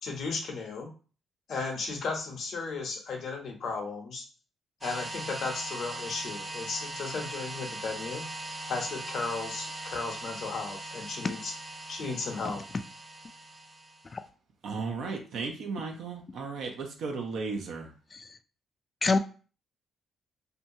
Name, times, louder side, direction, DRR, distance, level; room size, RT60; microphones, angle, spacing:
voice 1, 0.0-0.9 1.5-4.3 4.8-8.3 8.7-11.5 11.9-12.6, left 4 dB, 65° left, 0.8 m, -35 dB
sound 1, 4.8-14.2, right 2 dB, 20° right, 0.6 m, -40 dB
voice 2, 14.1-14.2 18.1-18.4 19.0-19.2, left 3 dB, 35° left, 0.3 m, -26 dB
voice 3, 14.6-17.9, right 4 dB, 75° right, 0.6 m, -35 dB
2.7 x 2.2 x 2.7 m
cardioid pair, 90°, 0 cm